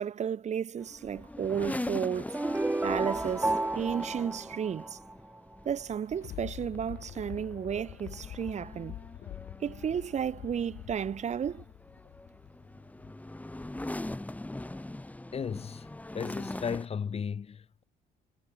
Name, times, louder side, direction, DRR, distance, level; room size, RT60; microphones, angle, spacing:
voice 1, 0.0-2.4 2.8-5.0 5.7-9.0 9.6-11.6, right 8 dB, 40° right, 2.1 m, -33 dB
sound 1, 0.8-16.9, left 1 dB, 10° left, 7.0 m, -42 dB
sound 2, 2.3-5.4, right 2 dB, 10° right, 1.5 m, -31 dB
Thunder, 5.8-13.3 13.8-13.9, left 13 dB, 70° left, 7.0 m, -46 dB
voice 2, 15.3-15.9 16.1-17.8, left 6 dB, 35° left, 3.2 m, -35 dB
cardioid pair, 110°, 17 cm